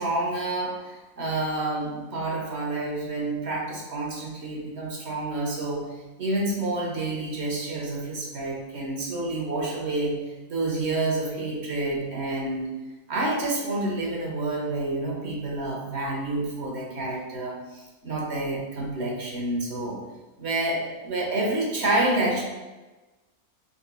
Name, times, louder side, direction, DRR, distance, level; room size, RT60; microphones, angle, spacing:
voice 1, 0.0-5.8 6.2-10.1 10.5-12.7 13.1-20.0 20.4-22.4, right 2 dB, 50° right, -2 dB, 1.1 m, -28 dB
4.1 x 4.0 x 2.3 m, 1.2 s
omnidirectional pair, 1.5 m